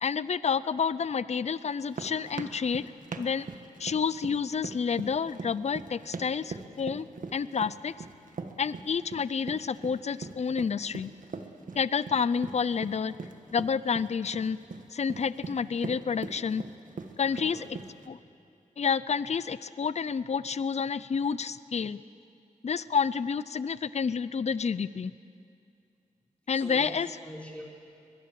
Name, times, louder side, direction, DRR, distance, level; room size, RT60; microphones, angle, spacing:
voice 1, 0.0-2.9 3.2-3.5 3.8-7.1 7.3-7.9 8.6-11.1 11.8-13.1 13.5-14.6 14.9-16.6 17.2-17.7 18.1-18.2 18.8-22.0 22.6-25.1 26.5-27.1, left 6 dB, 55° left, 16 dB, 0.5 m, -29 dB
sound 1, 1.7-18.1, right 4 dB, 75° right, 1.5 m, -41 dB
voice 2, 17.2-17.7 26.5-27.6, equal, 10° left, -3 dB, 4.8 m, -44 dB
21.5 x 21.0 x 7.7 m, 2.5 s
wide cardioid pair, 70°, 14 cm